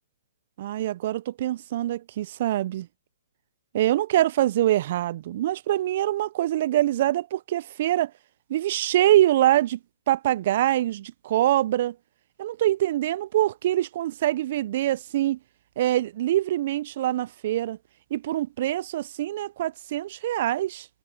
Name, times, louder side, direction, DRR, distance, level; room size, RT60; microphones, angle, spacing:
voice 1, 0.6-2.9 3.7-8.1 8.5-9.8 10.1-12.0 12.4-15.4 15.8-17.8 18.1-20.9, right 13 dB, 50° right, 0.3 m, -24 dB
hypercardioid pair, 145°, 0 cm